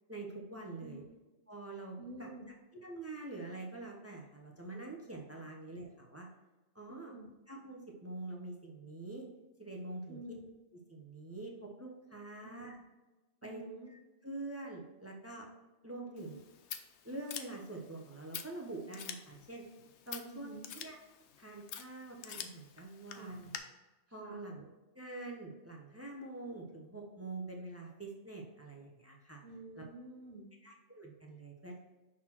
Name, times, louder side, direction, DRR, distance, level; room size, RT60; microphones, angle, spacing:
voice 1, 0.1-1.0 1.5-2.3 2.8-6.3 6.7-7.1 7.5-9.3 9.6-10.2 10.9-12.8 13.4-13.6 13.9-15.5 15.8-16.4 17.0-19.6 20.1-21.0 21.4-23.5 24.1-24.6 24.9-29.4 29.7-29.9 30.6-31.8, right 2 dB, 15° right, 0 dB, 0.7 m, -45 dB
voice 2, 2.0-2.5 5.3-5.4 6.9-7.3 10.1-10.5 12.4-12.8 13.4-13.9 16.0-16.3 20.2-20.7 23.1-23.4 24.1-24.4 29.4-30.5, right 1 dB, 60° right, -2 dB, 1.0 m, -49 dB
Scissors, 16.2-23.6, left 8 dB, 70° left, 0.9 m, -48 dB
6.0 x 4.1 x 4.4 m, 1.1 s
omnidirectional pair, 1.2 m